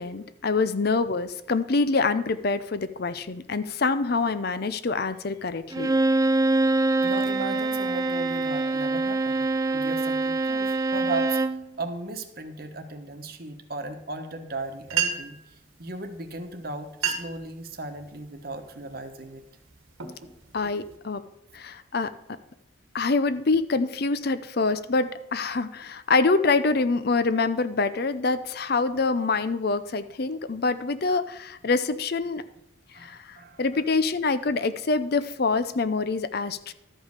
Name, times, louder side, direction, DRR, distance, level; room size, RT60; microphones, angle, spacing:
voice 1, 0.0-5.9 20.5-21.2 21.5-22.1 22.9-32.4 32.9-36.7, left 3 dB, 50° left, 12 dB, 0.6 m, -25 dB
Bowed string instrument, 5.7-11.6, right 2 dB, 20° right, 0.3 m, -24 dB
voice 2, 7.0-9.5 9.7-15.4 15.8-19.4 32.9-33.8, right 2 dB, 50° right, 7 dB, 1.1 m, -36 dB
sound 1, 14.6-14.7 14.9-15.5 16.4-16.5 16.9-17.5 17.9-18.3 18.9-19.2 19.7-21.0, right 8 dB, 85° right, 1.5 m, -30 dB
13.0 x 5.4 x 6.4 m, 0.89 s
head